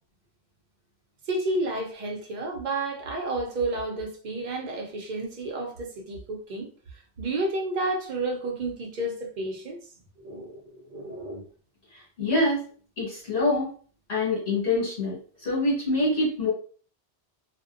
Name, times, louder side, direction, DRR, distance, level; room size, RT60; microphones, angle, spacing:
voice 1, 1.3-9.8 10.2-11.5, right 2 dB, 50° right, 0.6 m, -31 dB
voice 2, 11.9-12.6 13.0-13.7 14.1-16.5, left 2 dB, 75° left, 1.4 m, -25 dB
2.6 x 2.1 x 2.4 m
omnidirectional pair, 1.1 m